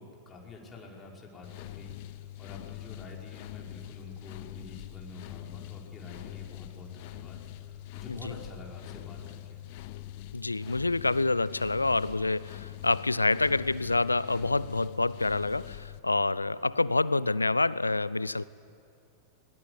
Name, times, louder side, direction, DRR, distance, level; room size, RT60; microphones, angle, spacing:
voice 1, 0.0-9.6, left 3 dB, 20° left, -2 dB, 5.0 m, -48 dB
sound 1, 1.4-16.0, left 14 dB, 50° left, 0.9 m, -44 dB
voice 2, 10.3-18.4, left 2 dB, 80° left, 20 dB, 0.5 m, -27 dB
22.5 x 21.5 x 9.8 m, 2.6 s
figure-of-eight pair, 90°, 0 cm